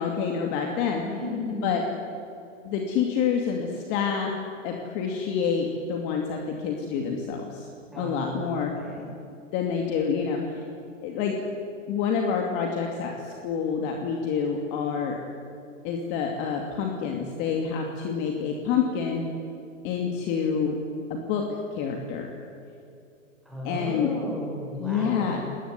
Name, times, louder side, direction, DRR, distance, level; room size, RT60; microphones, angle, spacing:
voice 1, 0.0-1.0 1.6-1.8 2.6-4.3 4.6-7.7 8.0-8.7 9.5-10.6 11.0-11.4 11.9-15.2 15.8-19.3 19.8-20.8 21.1-21.5 21.7-22.3 23.6-24.1 24.8-25.4, left 6 dB, 30° left, 2 dB, 2.6 m, -27 dB
voice 2, 0.9-1.7 7.8-9.1 23.4-25.4, left 1 dB, ahead, -3 dB, 6.4 m, -35 dB
27.5 x 19.5 x 9.7 m, 2.7 s
hypercardioid pair, 155°, 39 cm